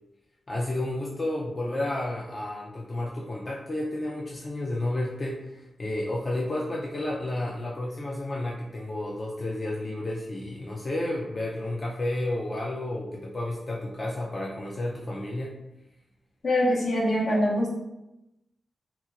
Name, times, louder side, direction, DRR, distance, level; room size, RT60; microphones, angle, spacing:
voice 1, 0.5-15.6, left 1 dB, 35° left, -3 dB, 0.4 m, -31 dB
voice 2, 16.4-17.7, equal, 65° left, -3 dB, 0.8 m, -23 dB
2.9 x 2.8 x 2.4 m, 0.90 s
wide cardioid pair, 100°, 0 cm